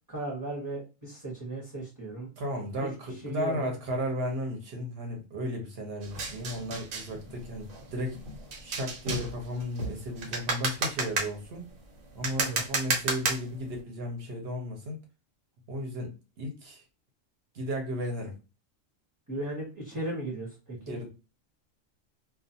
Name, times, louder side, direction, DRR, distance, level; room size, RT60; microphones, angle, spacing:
voice 1, 0.1-2.3 2.8-2.9 3.2-3.7 12.4-12.6 19.3-20.9, right 2 dB, 20° right, -5 dB, 0.8 m, -36 dB
voice 2, 2.4-8.2 8.6-11.7 12.1-15.0 15.7-16.8 17.5-18.4 20.7-21.1, equal, 55° right, 2 dB, 0.9 m, -34 dB
sound 1, 6.0-13.8, right 3 dB, 85° right, 1.2 m, -33 dB
2.4 x 2.2 x 2.7 m, 0.30 s
omnidirectional pair, 1.4 m